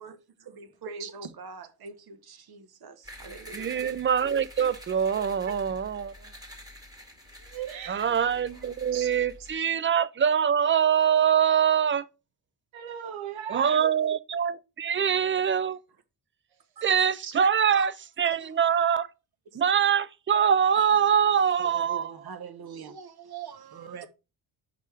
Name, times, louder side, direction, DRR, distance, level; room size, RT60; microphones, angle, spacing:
voice 1, 0.0-4.0 16.8-17.1 17.4-17.9 18.3-18.6 19.5-19.6 20.8-20.9 21.6-24.1, right 6 dB, 50° right, 1.2 m, -43 dB
sound 1, 3.0-9.6, left 1 dB, 5° right, 2.0 m, -47 dB
voice 2, 3.5-6.1 7.9-12.0 13.5-15.8 16.8-17.9 18.2-19.1 19.5-22.1, right 8 dB, 25° right, 0.5 m, -24 dB
voice 3, 7.4-8.0 8.9-9.1 9.5-9.6 12.7-13.8 17.2-17.3, right 9 dB, 70° right, 1.4 m, -37 dB
5.3 x 4.5 x 4.8 m
supercardioid pair, 60°, 50 cm